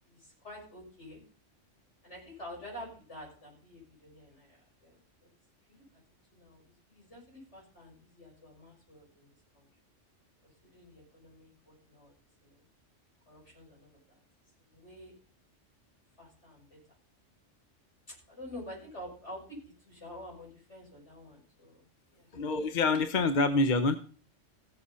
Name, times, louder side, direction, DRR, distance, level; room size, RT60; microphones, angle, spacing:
voice 1, 0.1-1.2 2.0-5.0 5.7-5.8 6.3-9.3 9.5-9.7 10.4-12.1 12.4-12.6 13.3-14.2 14.7-15.1 16.2-16.8 18.1-21.8 22.1-22.3, left 1 dB, 65° left, -2 dB, 7.0 m, -48 dB
voice 2, 22.3-24.0, left 3 dB, 45° left, 10 dB, 0.9 m, -26 dB
15.5 x 7.8 x 5.6 m, 0.41 s
omnidirectional pair, 1.3 m